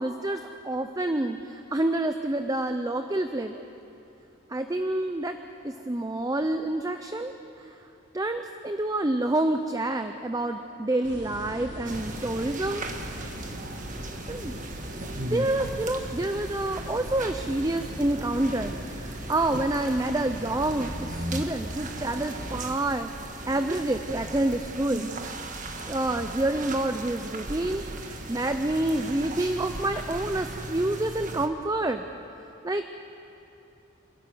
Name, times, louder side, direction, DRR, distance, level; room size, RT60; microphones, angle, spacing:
voice 1, 0.0-3.7 4.5-5.4 5.6-7.3 7.6-7.7 8.1-12.9 14.3-14.6 15.2-25.1 25.9-32.0 32.6-32.8, right 1 dB, 20° right, 7 dB, 0.6 m, -28 dB
sound 1, 11.0-22.7, equal, 60° right, 3.6 m, -40 dB
sound 2, 11.8-31.5, right 2 dB, 40° right, 1.5 m, -37 dB
27.0 x 13.5 x 9.4 m, 2.8 s
head